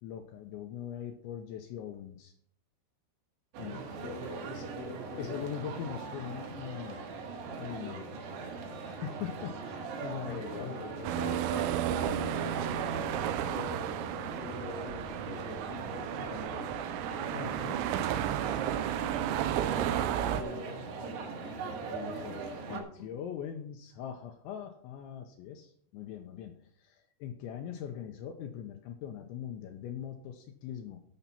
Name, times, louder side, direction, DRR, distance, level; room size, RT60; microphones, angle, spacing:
voice 1, 0.0-2.3 3.6-4.2 4.5-4.7 5.2-7.0 7.3-8.1 8.8-10.8 17.3-17.8 18.9-19.0 22.7-26.5 26.8-31.0, left 9 dB, 80° left, 5 dB, 2.9 m, -41 dB
sound 1, 3.5-22.8, right 4 dB, 65° right, 3.2 m, -40 dB
voice 2, 3.7-5.4 10.3-16.8 18.9-23.1, left 3 dB, 50° left, 4 dB, 2.0 m, -44 dB
sound 2, 11.0-20.4, right 11 dB, 90° right, 3.4 m, -33 dB
13.5 x 5.7 x 5.7 m, 0.63 s
omnidirectional pair, 5.9 m